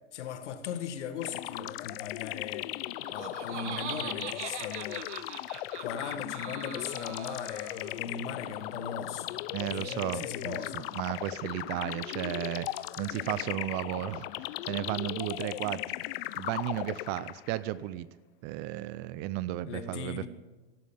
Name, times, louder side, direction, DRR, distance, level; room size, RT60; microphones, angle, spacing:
voice 1, 0.1-2.7 3.1-5.1 5.8-10.8 19.7-20.3, left 7 dB, 80° left, 1.8 m, -39 dB
sound 1, 1.2-17.6, left 16 dB, 55° left, 0.7 m, -38 dB
Laughter, 2.8-8.1, right 10 dB, 80° right, 1.3 m, -42 dB
voice 2, 9.5-12.7 13.0-15.8 16.4-18.1 18.4-20.3, right 15 dB, 30° right, 0.4 m, -34 dB
17.0 x 12.0 x 5.6 m
supercardioid pair, 145°, 35 cm